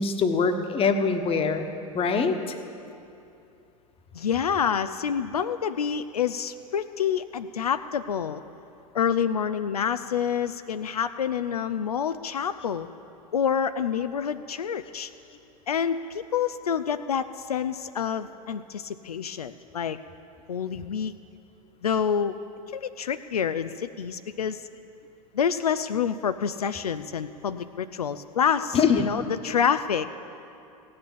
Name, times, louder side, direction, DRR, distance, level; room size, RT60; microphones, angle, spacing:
voice 1, 0.0-1.7 1.9-2.4 28.7-29.1, left 5 dB, 30° left, 7 dB, 1.2 m, -23 dB
voice 2, 4.1-8.4 8.9-12.9 13.3-15.1 15.7-20.0 20.5-21.1 21.8-22.4 22.7-24.7 25.3-30.1, left 7 dB, 90° left, 10 dB, 0.4 m, -27 dB
16.0 x 9.4 x 7.3 m, 2.7 s
hypercardioid pair, 85°, 19 cm